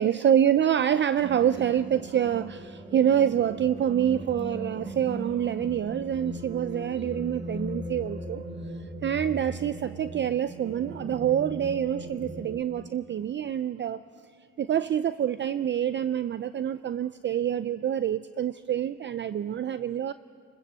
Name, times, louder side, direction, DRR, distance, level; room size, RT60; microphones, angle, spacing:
voice 1, 0.0-8.4 9.0-14.0 14.6-20.1, right 10 dB, 40° right, 14 dB, 0.4 m, -26 dB
sound 1, 1.2-12.6, right 1 dB, 20° right, 1.9 m, -38 dB
28.5 x 14.5 x 7.4 m, 2.3 s
cardioid pair, 90°, 30 cm